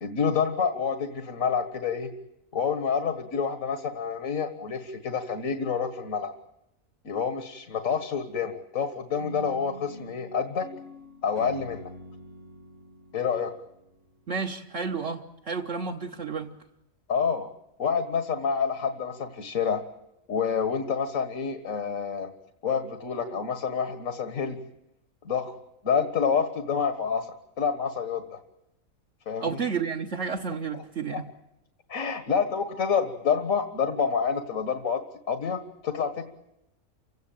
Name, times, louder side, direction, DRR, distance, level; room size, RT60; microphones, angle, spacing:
voice 1, 0.0-2.1 2.5-6.3 7.0-10.7 11.2-11.9 13.1-13.5 17.1-17.5 17.8-19.8 20.3-22.3 22.6-24.6 25.2-25.5 25.8-28.4 29.3-29.6 31.1-31.2 31.9-35.0 35.3-36.2, left 6 dB, 80° left, 7 dB, 2.0 m, -28 dB
sound 1, 9.2-14.3, equal, 45° right, 1.6 m, -45 dB
voice 2, 14.3-16.5 29.4-31.3, right 5 dB, 60° right, 0 dB, 1.6 m, -31 dB
28.5 x 17.0 x 9.0 m, 0.86 s
omnidirectional pair, 1.4 m